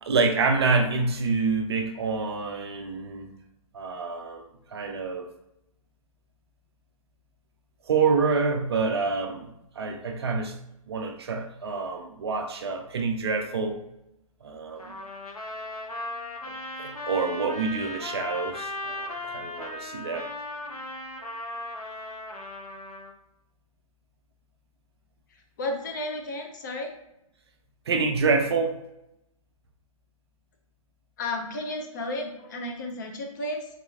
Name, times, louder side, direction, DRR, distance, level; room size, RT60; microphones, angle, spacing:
voice 1, 0.0-3.3 3.7-4.4 4.7-5.3 7.9-10.6 10.9-13.8 14.4-14.9 16.8-20.3 27.9-28.8, right 4 dB, 45° right, 4 dB, 0.4 m, -27 dB
Trumpet, 14.8-23.1, left 2 dB, 80° left, 0.7 m, -37 dB
voice 2, 25.6-26.9 31.2-33.7, left 1 dB, 35° left, 2 dB, 0.5 m, -33 dB
3.9 x 2.9 x 2.3 m, 0.85 s
figure-of-eight pair, 130°, 18 cm